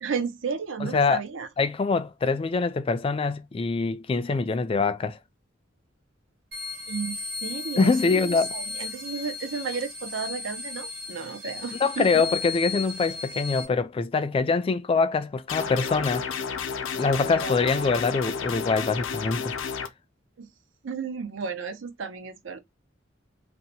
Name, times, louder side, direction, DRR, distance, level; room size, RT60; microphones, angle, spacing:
voice 1, 0.0-1.5 6.9-12.2 17.1-18.2 20.4-20.5 20.8-22.6, right 5 dB, 70° right, 0.6 m, -33 dB
voice 2, 0.8-1.2 1.6-5.2 7.8-8.5 11.8-16.3 17.0-19.5, left 4 dB, 30° left, 0.3 m, -24 dB
sound 1, 6.5-13.6, left 4 dB, 55° right, 1.4 m, -35 dB
sound 2, 15.5-19.9, left 6 dB, 85° left, 0.5 m, -31 dB
2.7 x 2.1 x 4.0 m
head